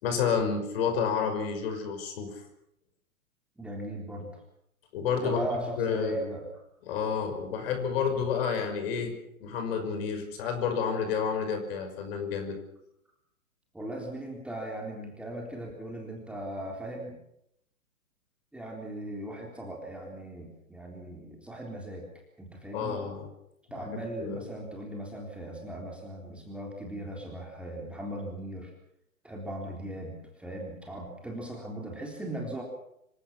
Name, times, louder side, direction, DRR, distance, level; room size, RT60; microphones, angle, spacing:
voice 1, 0.0-2.4 4.9-5.5 5.8-6.1 6.9-9.1 9.4-12.6 22.7-23.3 23.8-24.4, left 6 dB, 45° left, 6 dB, 5.9 m, -30 dB
voice 2, 3.6-4.4 5.2-6.5 8.1-8.2 13.7-17.2 18.5-22.1 22.4-23.0 23.7-28.7 29.2-32.6, right 1 dB, 5° right, -1 dB, 3.7 m, -38 dB
26.5 x 17.5 x 7.3 m, 0.78 s
figure-of-eight pair, 120°, 43 cm